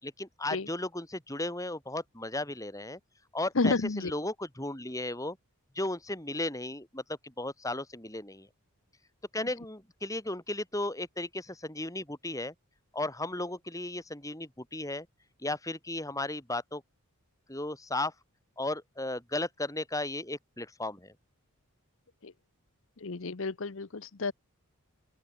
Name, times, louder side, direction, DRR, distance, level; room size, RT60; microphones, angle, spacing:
voice 1, 0.0-3.0 3.3-3.8 4.0-5.4 5.7-8.5 9.3-12.5 12.9-15.1 15.4-16.8 17.5-18.1 18.6-21.1, left 2 dB, 15° left, 4.2 m, -35 dB
voice 2, 3.5-4.1 22.2-22.3 23.0-24.3, left 3 dB, 60° left, 0.8 m, -30 dB
open air
head